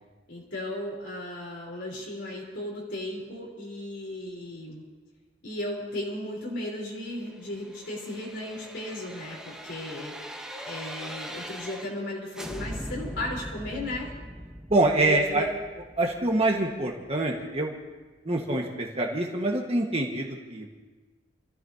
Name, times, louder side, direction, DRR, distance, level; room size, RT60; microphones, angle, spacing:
voice 1, 0.3-4.8 5.4-10.3 10.6-14.1 15.0-15.5, left 1 dB, 80° left, -5 dB, 4.1 m, -35 dB
sound 1, 7.3-12.1 12.3-17.2 17.6-17.7, equal, 5° right, 1.0 m, -41 dB
voice 2, 14.7-15.5 16.0-17.7 18.2-20.7, right 2 dB, 35° right, 0 dB, 1.6 m, -25 dB
29.0 x 14.5 x 2.9 m, 1.3 s
head